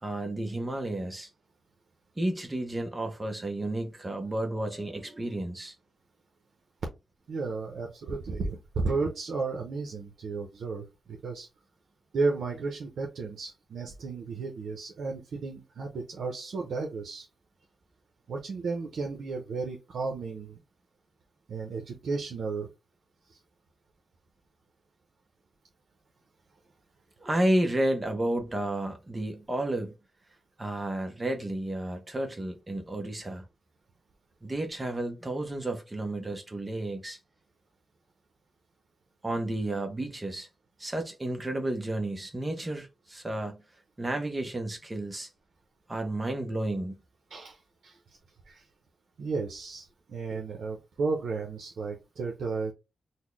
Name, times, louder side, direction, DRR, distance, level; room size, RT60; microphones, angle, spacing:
voice 1, 0.0-1.3 2.2-5.7 27.2-29.9 30.6-33.4 34.4-37.2 39.2-40.5 40.8-43.6 44.0-45.3 45.9-46.9 50.3-50.4, right 1 dB, 20° right, 0.6 m, -31 dB
voice 2, 7.3-11.5 12.1-17.3 18.3-20.6 21.5-22.7 23.3-23.4 47.3-48.0 48.5-48.6 49.2-52.7, right 4 dB, 75° right, 0.6 m, -33 dB
4.1 x 2.1 x 3.1 m
wide cardioid pair, 120°, 0 cm